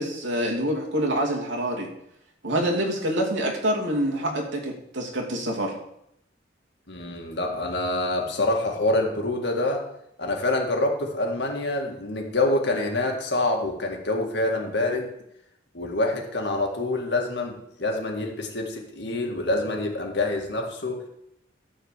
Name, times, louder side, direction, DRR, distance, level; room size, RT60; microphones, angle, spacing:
voice 1, 0.0-1.9 2.4-5.7, right 1 dB, 80° right, -1 dB, 2.6 m, -26 dB
voice 2, 6.9-9.8 10.2-15.1 15.7-21.1, left 2 dB, 60° left, 1 dB, 2.0 m, -26 dB
13.0 x 4.7 x 7.4 m, 0.76 s
head